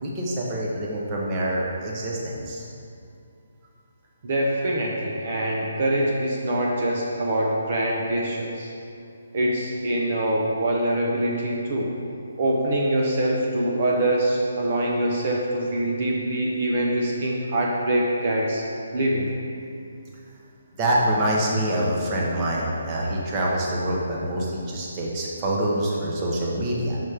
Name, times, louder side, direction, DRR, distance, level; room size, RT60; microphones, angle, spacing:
voice 1, 0.0-2.6 20.8-27.0, right 1 dB, 20° right, -4 dB, 1.1 m, -25 dB
voice 2, 4.2-8.7 9.3-11.9 12.4-18.6 18.9-19.3, right 1 dB, 45° right, -2 dB, 0.9 m, -24 dB
6.2 x 5.6 x 5.0 m, 2.5 s
hypercardioid pair, 160°, 0 cm